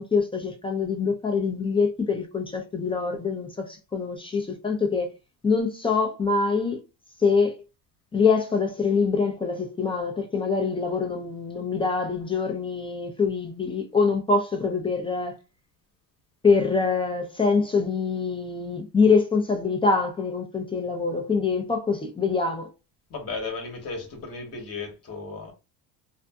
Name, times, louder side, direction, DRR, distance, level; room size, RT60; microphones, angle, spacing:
voice 1, 0.0-5.1 5.4-6.8 7.2-7.5 8.1-15.3 16.4-22.7, left 4 dB, 15° left, 0.4 m, -24 dB
voice 2, 23.1-25.5, left 3 dB, 35° left, 1.0 m, -35 dB
2.5 x 2.5 x 2.2 m
cardioid pair, 115°, 40 cm